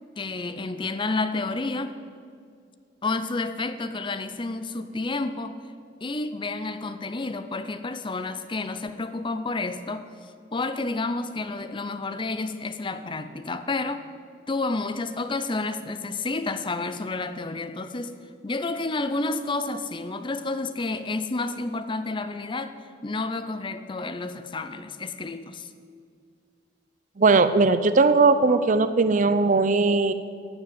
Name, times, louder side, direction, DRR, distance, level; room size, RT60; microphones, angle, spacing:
voice 1, 0.2-2.0 3.0-5.6 6.0-14.1 14.5-22.8 23.0-25.7, left 3 dB, 25° left, 10 dB, 0.5 m, -30 dB
voice 2, 27.2-30.1, right 3 dB, 40° right, 12 dB, 0.5 m, -19 dB
12.0 x 7.4 x 9.4 m, 2.2 s
head